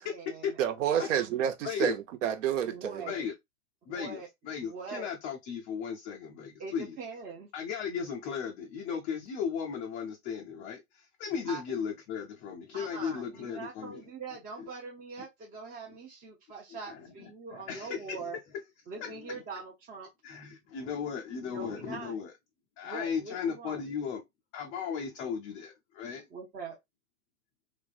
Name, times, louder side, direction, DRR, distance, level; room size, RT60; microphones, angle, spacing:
voice 1, 0.0-0.6 0.9-1.4 2.7-3.3 3.9-4.3 4.6-5.1 6.6-7.5 11.5-11.6 12.7-18.4 18.9-20.1 21.4-22.1 22.8-23.8 26.3-26.8, right 4 dB, 20° right, 0.7 m, -43 dB
voice 2, 0.6-3.1, right 9 dB, 55° right, 0.9 m, -29 dB
voice 3, 1.6-2.0 3.1-3.3 3.9-7.0 7.5-14.0 14.6-14.7 16.8-18.3 19.0-19.4 20.2-22.3 22.8-24.2 24.5-26.2, left 7 dB, 20° left, 0.4 m, -36 dB
3.3 x 3.2 x 2.4 m
hypercardioid pair, 115°, 44 cm